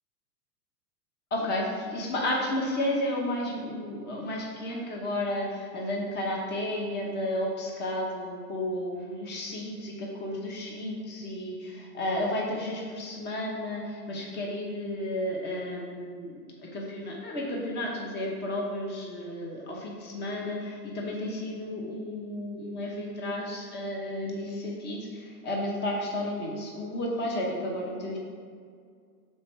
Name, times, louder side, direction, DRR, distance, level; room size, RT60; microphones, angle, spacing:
voice 1, 1.3-28.2, left 1 dB, 20° left, -2 dB, 1.0 m, -32 dB
6.1 x 4.4 x 4.6 m, 2.1 s
hypercardioid pair, 115°, 49 cm